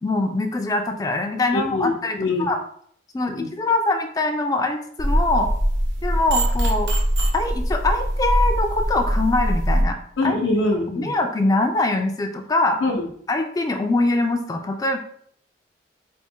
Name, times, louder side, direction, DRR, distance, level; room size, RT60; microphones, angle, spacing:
voice 1, 0.0-2.6 3.1-5.5 6.0-6.9 7.3-10.0 10.2-10.4 11.0-12.8 13.3-15.0, left 2 dB, 20° left, 5 dB, 0.3 m, -23 dB
voice 2, 1.5-2.5 3.3-3.5 10.2-11.1 12.8-13.1, left 2 dB, 90° left, -1 dB, 0.7 m, -23 dB
sound 1, 5.0-9.8, equal, 75° right, 0.8 m, -22 dB
4.3 x 2.1 x 4.4 m, 0.62 s
head